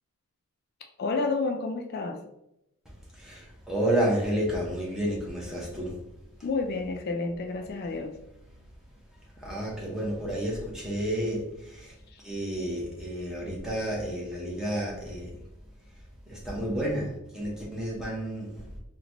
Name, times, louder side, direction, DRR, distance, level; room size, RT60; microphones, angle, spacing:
voice 1, 1.0-2.2 6.4-8.1 12.1-12.2, left 3 dB, 45° left, 5 dB, 0.3 m, -30 dB
voice 2, 3.1-6.0 9.4-12.0 12.2-15.4 16.3-18.7, right 1 dB, 5° right, -4 dB, 0.8 m, -31 dB
3.8 x 2.2 x 2.9 m, 0.84 s
head